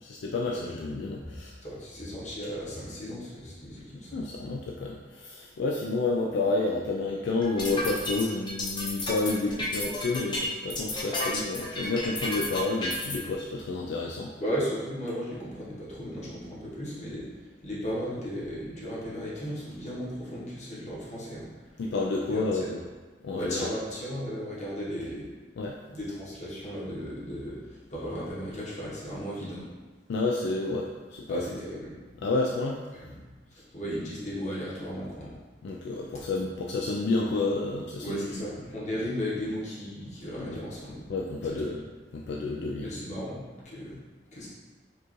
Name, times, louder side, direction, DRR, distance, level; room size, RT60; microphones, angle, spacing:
voice 1, 0.0-1.6 4.1-14.3 21.8-22.8 23.2-23.7 25.6-25.8 30.1-31.5 32.2-32.9 35.6-38.4 40.4-40.6 41.1-41.8 42.1-42.9, left 3 dB, 70° left, -2 dB, 0.3 m, -30 dB
voice 2, 1.6-4.2 14.4-17.2 17.6-21.5 22.3-22.7 23.3-25.3 25.9-29.6 31.3-32.0 32.9-35.3 38.0-41.0 41.4-41.6 42.8-44.0 44.3-44.5, equal, 40° left, -8 dB, 1.2 m, -35 dB
sound 1, 7.4-13.2, left 1 dB, 25° left, 0.7 m, -32 dB
4.7 x 2.4 x 3.1 m, 1.3 s
head